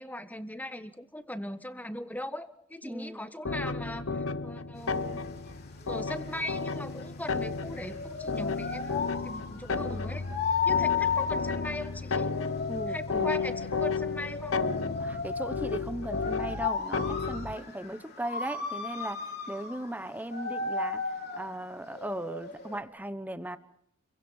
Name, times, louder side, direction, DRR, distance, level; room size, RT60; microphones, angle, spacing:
voice 1, 0.0-5.3 5.9-10.3 10.6-12.3 12.9-14.6, left 1 dB, 10° left, 1.4 m, -39 dB
voice 2, 2.8-3.2 12.7-13.3 15.0-23.6, right 1 dB, 10° right, 1.2 m, -37 dB
sound 1, 3.4-17.6, left 4 dB, 85° left, 1.1 m, -33 dB
sound 2, 4.8-22.8, left 5 dB, 55° left, 3.4 m, -34 dB
29.0 x 23.5 x 5.7 m
head